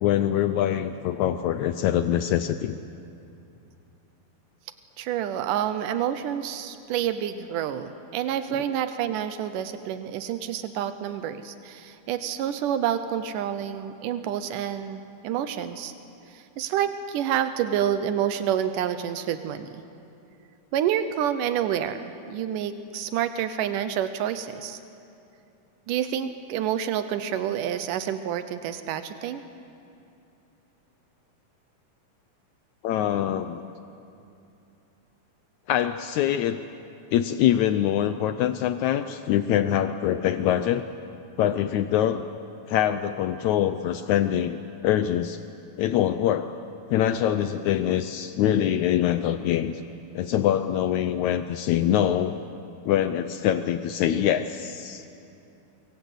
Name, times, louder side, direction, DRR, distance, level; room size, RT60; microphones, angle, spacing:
voice 1, 0.0-2.8 32.8-33.6 35.7-36.6 37.1-40.8 41.4-42.2 42.7-44.6 44.8-45.4 45.8-46.5 46.9-49.8 50.1-52.4 52.9-55.1, left 11 dB, 75° left, 10 dB, 1.9 m, -24 dB
voice 2, 5.0-15.9 16.3-19.8 20.7-24.8 25.9-29.4, right 10 dB, 90° right, 10 dB, 2.5 m, -28 dB
24.0 x 24.0 x 8.1 m, 2.7 s
omnidirectional pair, 3.6 m